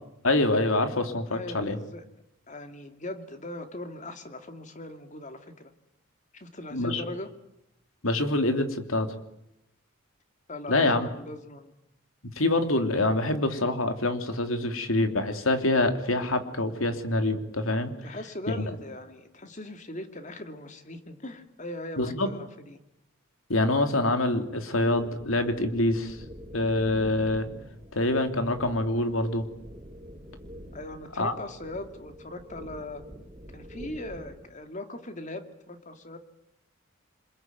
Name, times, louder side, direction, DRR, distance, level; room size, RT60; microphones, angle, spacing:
voice 1, 0.2-1.8 6.7-7.0 8.0-9.1 10.7-11.1 12.2-17.9 22.0-22.3 23.5-26.2 26.5-27.5 27.9-29.5 31.2-31.3, left 2 dB, 80° left, 7 dB, 3.1 m, -25 dB
voice 2, 1.3-2.0 2.5-5.7 6.3-7.3 10.5-11.7 18.0-22.8 30.7-33.0 33.5-36.2, left 1 dB, 35° left, 8 dB, 2.4 m, -40 dB
sound 1, 24.8-34.5, equal, 25° right, 3.6 m, -46 dB
27.5 x 21.5 x 9.4 m, 0.82 s
head